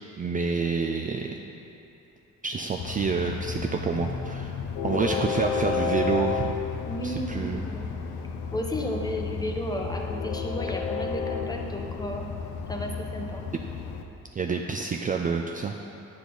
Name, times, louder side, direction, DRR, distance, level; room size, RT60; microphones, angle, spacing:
voice 1, 0.2-1.4 2.4-4.6 4.8-6.6 7.0-7.7 14.3-15.8, right 5 dB, 30° right, 2 dB, 0.4 m, -28 dB
Train, 2.8-14.0, left 5 dB, 80° left, 0.7 m, -32 dB
voice 2, 4.8-5.2 6.9-7.9 8.5-12.3 12.7-13.4, equal, 15° left, 1 dB, 0.9 m, -33 dB
8.1 x 6.8 x 3.9 m, 2.9 s
cardioid pair, 90°, 30 cm